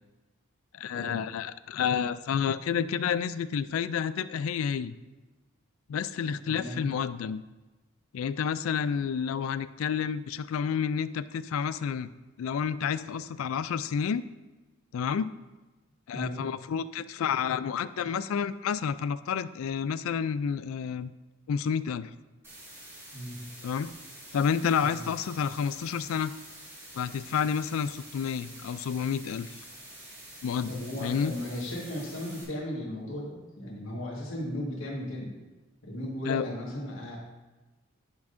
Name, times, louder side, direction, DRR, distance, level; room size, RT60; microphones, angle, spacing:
voice 1, 0.7-4.9 5.9-7.4 8.1-12.1 12.4-14.2 14.9-15.3 16.1-21.1 21.5-22.1 23.6-23.9 24.3-26.3 26.9-29.5 30.4-30.7 31.0-31.3 36.3-36.5, left 7 dB, 90° left, 15 dB, 0.3 m, -30 dB
voice 2, 6.5-6.8 16.1-16.4 23.1-23.4 24.8-25.1 30.7-35.3 35.8-37.2, left 1 dB, 75° left, -3 dB, 1.7 m, -36 dB
sound 1, 22.4-32.4, right 1 dB, 10° right, 1.8 m, -48 dB
10.5 x 6.0 x 2.6 m, 1.2 s
head